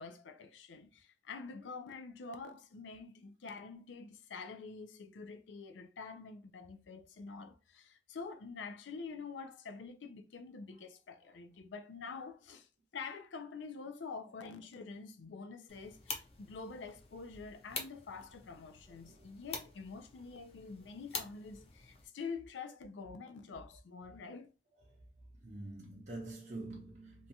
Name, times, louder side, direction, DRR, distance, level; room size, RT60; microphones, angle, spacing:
voice 1, 0.0-12.7 12.9-24.5, left 4 dB, 85° left, 0.4 m, -47 dB
sound 1, 15.7-22.1, left 4 dB, 35° left, 0.5 m, -47 dB
voice 2, 25.4-27.3, right 2 dB, 40° right, 0.5 m, -46 dB
2.6 x 2.2 x 2.7 m
head